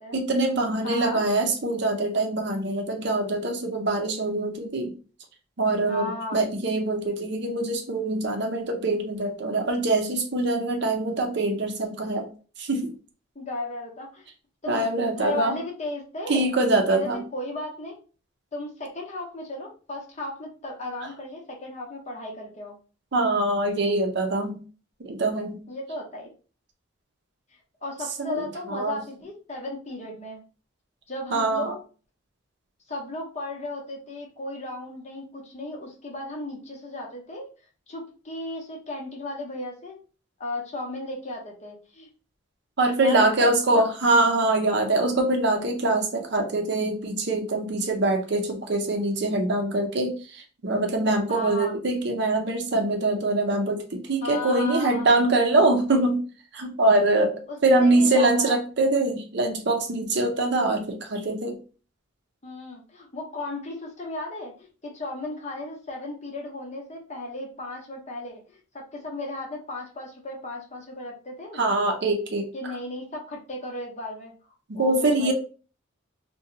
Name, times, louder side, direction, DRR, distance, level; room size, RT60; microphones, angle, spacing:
voice 1, 0.1-4.9 5.6-12.3 12.6-12.9 14.7-15.6 16.3-17.2 23.1-24.6 25.0-25.6 28.2-29.0 31.3-31.7 42.8-56.2 56.5-57.3 57.6-61.6 71.5-72.5 74.7-75.3, right 2 dB, 55° right, 4 dB, 0.6 m, -24 dB
voice 2, 0.8-1.2 5.9-6.4 13.3-14.3 14.6-14.8 15.2-16.5 16.9-18.0 18.5-22.8 25.7-26.3 27.8-30.4 31.1-31.8 32.9-37.5 37.9-40.0 40.4-42.1 43.0-43.8 51.3-51.7 54.2-55.1 57.5-58.6 62.4-71.6 72.5-74.3 74.7-75.3, left 2 dB, 35° left, -1 dB, 0.8 m, -35 dB
2.7 x 2.2 x 3.7 m, 0.37 s
head